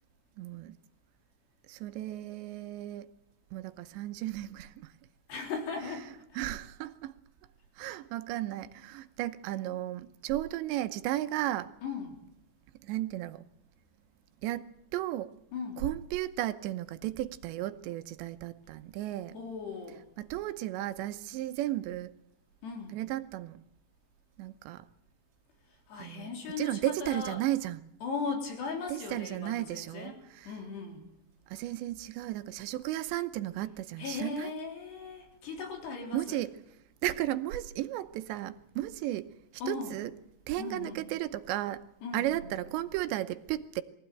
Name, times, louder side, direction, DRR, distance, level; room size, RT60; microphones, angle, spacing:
voice 1, 0.4-0.8 1.7-3.1 3.5-4.9 6.4-7.1 7.8-11.7 12.8-13.4 14.4-15.3 15.8-19.4 20.2-22.1 22.9-23.6 24.4-24.9 26.0-26.3 26.6-27.9 28.9-30.5 31.5-34.5 36.1-36.5 37.0-39.3 39.7-40.1 40.5-41.8 42.1-43.8, right 14 dB, 85° right, 3.2 m, -34 dB
voice 2, 5.3-6.1 11.8-12.2 15.5-15.8 19.3-20.1 22.6-23.0 25.9-27.4 28.0-31.1 34.0-36.4 39.6-40.0 40.6-41.0 42.0-42.3, left 5 dB, 70° left, 5.8 m, -38 dB
23.0 x 16.0 x 9.2 m
omnidirectional pair, 5.0 m